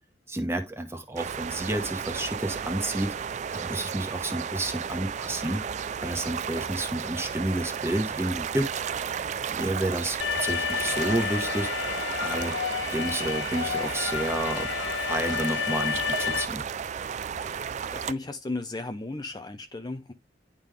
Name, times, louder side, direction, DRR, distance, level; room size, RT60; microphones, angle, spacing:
voice 1, 0.3-3.1 3.5-5.6 6.0-8.7 9.5-11.7 12.2-12.5 12.9-14.7 15.1-16.6, right 1 dB, 15° right, 1.1 m, -30 dB
sound 1, 1.2-18.1, right 7 dB, 40° right, 0.3 m, -33 dB
Alarm, 10.2-16.5, left 9 dB, 80° left, 0.3 m, -31 dB
voice 2, 17.9-20.1, left 2 dB, 25° left, 0.5 m, -34 dB
10.5 x 3.7 x 3.4 m
head